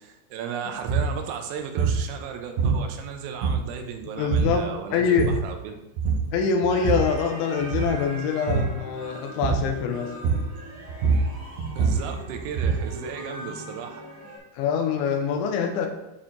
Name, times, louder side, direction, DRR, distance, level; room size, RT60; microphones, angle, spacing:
voice 1, 0.0-5.8 11.8-14.0, right 7 dB, 85° right, 5 dB, 3.2 m, -35 dB
sound 1, 0.9-1.1 1.8-2.1 2.6-3.1 3.4-3.9 4.3-4.6 5.0-5.5 6.0-6.3 6.6-7.2 7.6-8.0 8.5-8.8 9.4-9.8 10.2-10.6 10.9-12.9, right 5 dB, 70° right, 2.5 m, -24 dB
voice 2, 4.2-5.3 6.3-10.1 14.5-15.9, left 6 dB, 90° left, 5 dB, 3.1 m, -24 dB
sound 2, 6.7-14.4, right 1 dB, 50° right, 0.4 m, -41 dB
8.7 x 4.5 x 3.8 m, 0.96 s
omnidirectional pair, 5.3 m